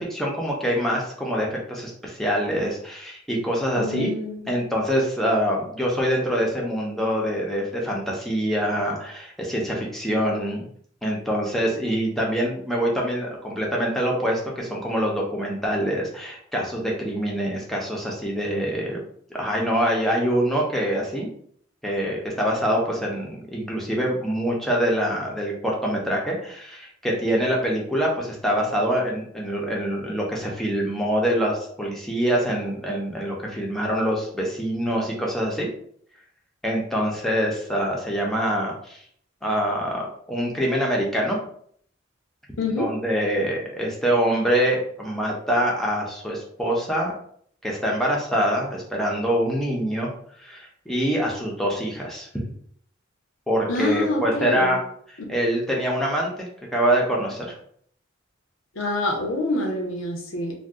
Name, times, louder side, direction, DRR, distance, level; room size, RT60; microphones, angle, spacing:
voice 1, 0.0-4.2 4.5-10.7 11.0-19.0 19.3-21.3 21.8-35.7 36.6-39.0 39.4-41.4 42.8-47.1 47.6-50.1 50.4-52.3 53.5-54.8 55.3-56.5 56.7-57.6, equal, ahead, -2 dB, 0.6 m, -25 dB
voice 2, 3.7-4.5 42.6-42.9 53.7-54.8 58.7-60.5, left 2 dB, 85° left, 0 dB, 0.8 m, -26 dB
2.6 x 2.3 x 3.4 m, 0.62 s
head